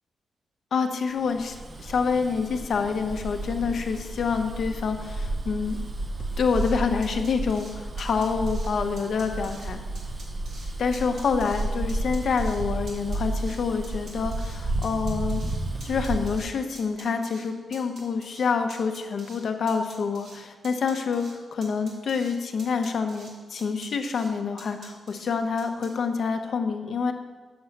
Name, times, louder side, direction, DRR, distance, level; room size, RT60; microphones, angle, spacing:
voice 1, 0.7-5.8 6.4-9.8 10.8-15.4 15.8-27.1, left 5 dB, 70° left, 5 dB, 0.9 m, -27 dB
Bus, 1.3-16.4, right 2 dB, 40° right, 0.7 m, -32 dB
sound 1, 6.5-6.7 7.0-7.7 8.0-8.7 9.0-9.7 10.0-10.7 10.9-11.6 11.9-12.6 12.9-14.6 14.8-16.5 16.8-17.5 17.7-18.4 18.7-19.4 19.7-20.4 20.6-21.3 21.6-22.3 22.6-23.3 23.6-24.3 24.6-25.3 25.6-25.9, right 2 dB, 80° right, 2.8 m, -47 dB
7.7 x 5.6 x 7.1 m, 1.4 s
cardioid pair, 80°, 0 cm